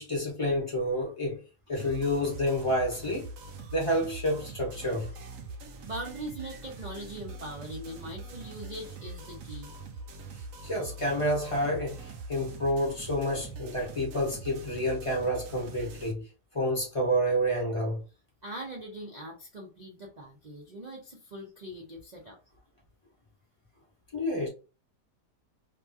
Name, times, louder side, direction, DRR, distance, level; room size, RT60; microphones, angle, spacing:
voice 1, 0.0-1.4 1.7-3.3 3.7-5.1 6.1-6.2 10.6-16.3 16.5-18.0 24.1-24.5, equal, 30° left, 0.7 m, -29 dB
sound 1, 1.8-16.1, right 3 dB, 65° right, 0.9 m, -43 dB
voice 2, 5.8-9.7 18.4-22.4, right 1 dB, 85° right, 0.3 m, -41 dB
2.9 x 2.3 x 2.6 m
omnidirectional pair, 1.7 m